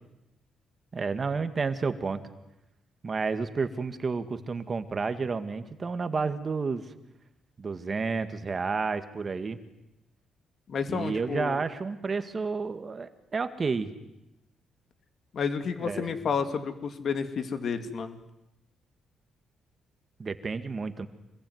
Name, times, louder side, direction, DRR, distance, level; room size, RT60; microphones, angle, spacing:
voice 1, 0.9-2.2 3.0-6.9 7.6-9.6 10.9-13.9 15.8-16.2 20.2-21.1, right 4 dB, 35° right, 9 dB, 2.0 m, -31 dB
voice 2, 10.7-11.6 15.3-18.2, left 6 dB, 55° left, 8 dB, 2.8 m, -31 dB
26.0 x 21.5 x 9.5 m, 0.90 s
cardioid pair, 90°, 0 cm